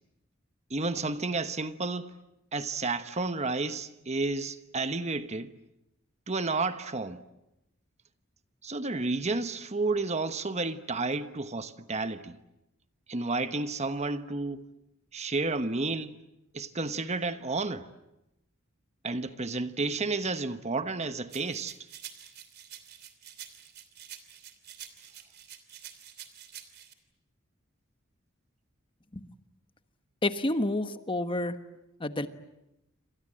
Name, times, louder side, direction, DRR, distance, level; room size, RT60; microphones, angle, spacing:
voice 1, 0.7-2.1 2.5-5.5 6.3-7.2 8.6-12.4 13.1-14.6 15.1-16.2 16.5-17.9 19.0-21.8, right 3 dB, 35° right, 1.1 m, -31 dB
sound 1, 21.3-26.9, right 10 dB, 55° right, 3.0 m, -48 dB
voice 2, 30.2-31.6 32.0-32.3, left 1 dB, 25° left, 1.2 m, -29 dB
28.5 x 26.5 x 7.7 m
head